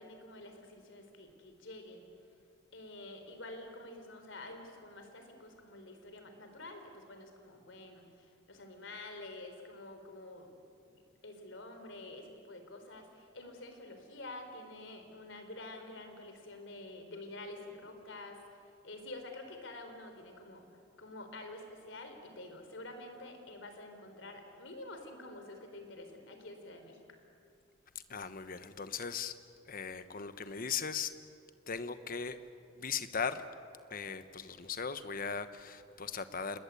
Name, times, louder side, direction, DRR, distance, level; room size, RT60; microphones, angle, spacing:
voice 1, 0.0-2.1 2.7-10.5 10.8-18.4 18.8-20.7 21.0-27.0, left 2 dB, 70° left, 6 dB, 3.9 m, -48 dB
voice 2, 28.1-29.4 29.7-31.1 31.7-32.4 32.8-33.4 33.9-36.6, left 6 dB, 45° left, 11 dB, 1.2 m, -38 dB
28.0 x 21.0 x 8.4 m, 2.4 s
head